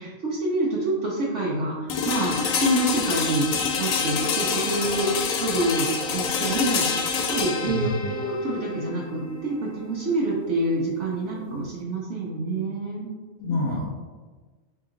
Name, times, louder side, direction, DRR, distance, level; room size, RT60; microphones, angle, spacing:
voice 1, 0.0-13.1, right 1 dB, 65° right, -6 dB, 1.0 m, -27 dB
sound 1, 1.9-11.8, left 5 dB, 80° left, 1.0 m, -28 dB
voice 2, 7.6-8.1 13.4-13.8, left 1 dB, 35° left, -3 dB, 1.2 m, -27 dB
3.9 x 2.9 x 3.7 m, 1.4 s
omnidirectional pair, 1.4 m